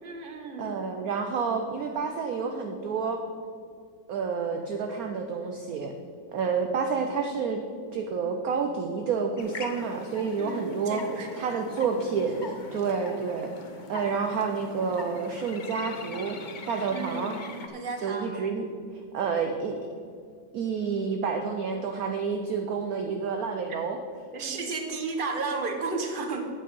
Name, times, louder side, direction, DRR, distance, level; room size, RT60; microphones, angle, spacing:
voice 1, 0.0-0.7 10.4-11.6 16.9-17.5 17.7-18.6 24.3-26.5, right 3 dB, 35° right, 4 dB, 0.9 m, -33 dB
voice 2, 0.6-3.2 4.1-5.9 6.3-7.6 7.9-11.0 11.3-13.5 13.9-16.4 16.7-17.4 18.0-18.7 19.1-19.7 20.5-24.0 24.4-24.7, right 5 dB, 65° right, 4 dB, 0.9 m, -29 dB
sound 1, 9.4-17.7, left 3 dB, 60° left, 0.4 m, -42 dB
8.7 x 8.6 x 5.4 m, 2.2 s
omnidirectional pair, 2.1 m